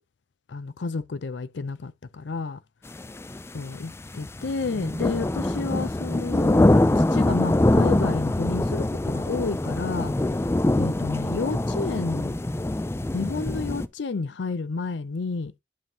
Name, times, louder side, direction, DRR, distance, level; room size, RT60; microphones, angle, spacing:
voice 1, 0.5-2.6 3.5-10.1 10.8-12.4 13.1-15.5, left 4 dB, 75° left, 0.5 m, -31 dB
sound 1, 2.9-13.9, left 1 dB, 15° left, 0.3 m, -24 dB
sound 2, 4.7-13.5, equal, 5° right, 1.6 m, -40 dB
11.5 x 5.4 x 2.8 m
head